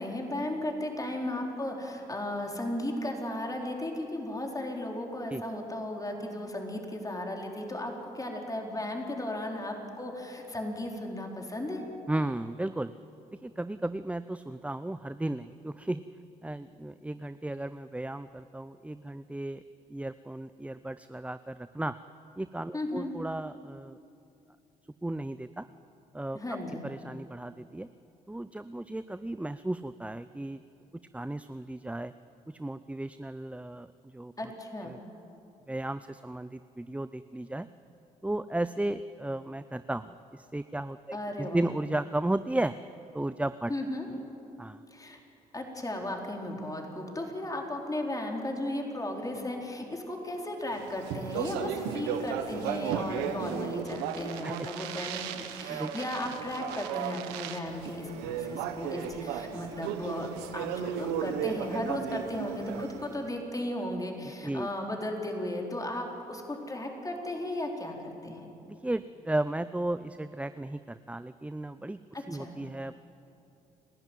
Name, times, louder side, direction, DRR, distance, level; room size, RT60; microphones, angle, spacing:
voice 1, 0.0-11.8 22.7-23.1 26.3-26.8 34.4-34.9 41.1-41.6 43.7-44.1 44.9-45.2 45.5-60.3 60.5-68.4 72.1-72.5, left 1 dB, 20° left, 1 dB, 4.5 m, -35 dB
voice 2, 12.1-12.9 13.3-16.0 16.4-19.6 19.9-22.0 22.4-24.0 25.0-25.7 26.1-26.4 26.8-27.9 28.3-30.6 31.1-32.1 32.5-34.5 34.8-35.0 35.7-37.7 38.2-42.7 43.1-43.7 44.6-44.8 54.4-54.7 55.7-55.9 64.4-64.7 68.7-72.0 72.3-73.0, right 1 dB, 10° right, 13 dB, 0.6 m, -34 dB
Speech, 50.8-63.2, right 8 dB, 85° right, 1.2 m, -35 dB
29.5 x 12.0 x 9.2 m, 2.8 s
hypercardioid pair, 55°, 16 cm